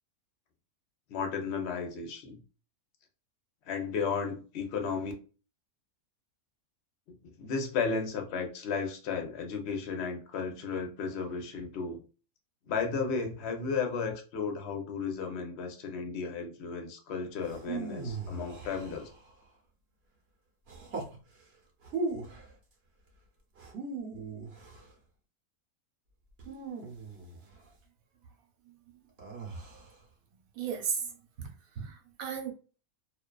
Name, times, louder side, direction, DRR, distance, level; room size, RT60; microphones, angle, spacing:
voice 1, 1.1-2.4 3.7-5.1 7.1-12.0 12.7-19.1, left 5 dB, 60° left, 0.8 m, -34 dB
sound 1, 17.4-19.4 20.7-21.2 21.8-22.5 23.6-24.9 26.4-27.6 29.2-30.0, right 3 dB, 55° right, 0.8 m, -39 dB
voice 2, 30.6-31.5 31.8-32.5, right 7 dB, 75° right, 1.1 m, -35 dB
2.4 x 2.3 x 2.2 m
omnidirectional pair, 1.5 m